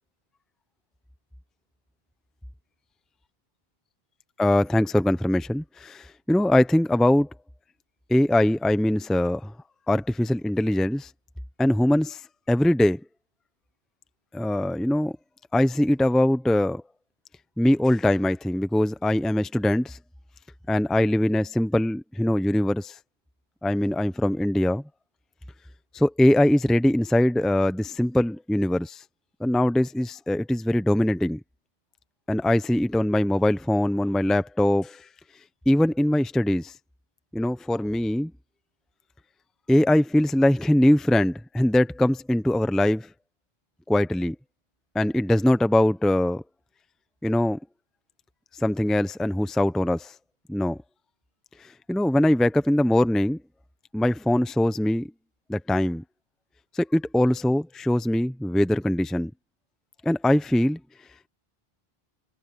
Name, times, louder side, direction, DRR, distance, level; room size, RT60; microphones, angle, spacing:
voice 1, 4.4-7.3 8.1-9.5 9.9-11.1 11.6-12.2 12.5-13.0 14.3-15.1 15.5-16.8 17.6-20.0 20.7-22.9 23.6-24.8 25.9-29.0 29.4-31.4 32.3-35.0 35.7-36.7 37.3-38.3 39.7-43.1 43.9-44.3 44.9-46.4 47.2-47.6 48.6-50.1 50.5-50.8 51.9-53.4 53.9-55.1 55.5-56.0 56.7-59.3 60.0-60.8, left 1 dB, ahead, 0.7 m, -22 dB
omnidirectional pair, 1.0 m